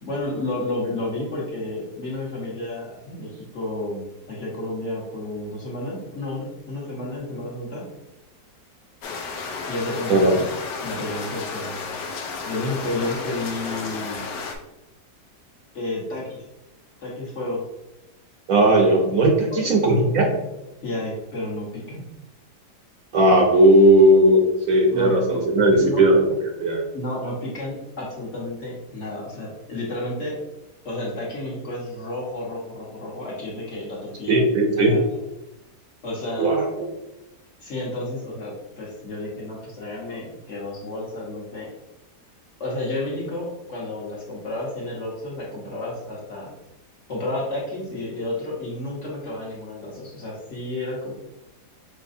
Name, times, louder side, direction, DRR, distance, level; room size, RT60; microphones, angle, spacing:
voice 1, 0.0-7.9 9.7-10.5 10.8-11.8 12.4-14.2 15.7-16.4 17.0-17.6 19.5-19.6 20.8-22.1 24.9-25.4 25.8-26.0 26.9-30.4 30.8-34.4 34.7-35.0 36.0-36.6 37.6-41.7 42.6-46.5 47.1-51.1, left 1 dB, 50° left, -5 dB, 1.4 m, -31 dB
sound 1, 9.0-14.6, left 4 dB, 85° left, 1.3 m, -32 dB
voice 2, 18.5-20.3 23.1-26.2 26.6-26.8 34.3-35.0 36.4-36.8, right 1 dB, 65° right, 1 dB, 1.0 m, -17 dB
6.1 x 3.0 x 2.6 m, 0.93 s
omnidirectional pair, 1.8 m